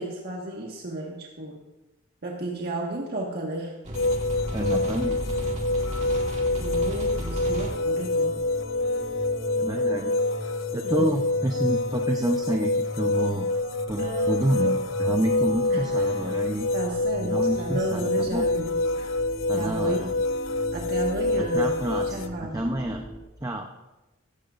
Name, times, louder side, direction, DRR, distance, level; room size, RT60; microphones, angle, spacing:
voice 1, 0.0-1.6 2.2-3.8 6.6-8.4 10.8-11.1 14.0-14.7 15.7-16.2 16.7-19.1 19.5-20.1 20.7-21.7 22.1-22.6, right 2 dB, 55° right, -2 dB, 1.6 m, -33 dB
sound 1, 3.8-23.2, equal, 35° right, 2.3 m, -37 dB
sound 2, 3.9-22.3, left 2 dB, 80° left, 0.7 m, -26 dB
voice 2, 4.5-5.2 9.6-10.2 10.7-13.5 13.9-16.7 17.2-18.4 19.5-20.1 21.4-22.0 22.4-23.0 23.4-23.7, right 1 dB, 20° right, 3 dB, 0.7 m, -28 dB
16.0 x 15.0 x 2.6 m, 1.0 s
head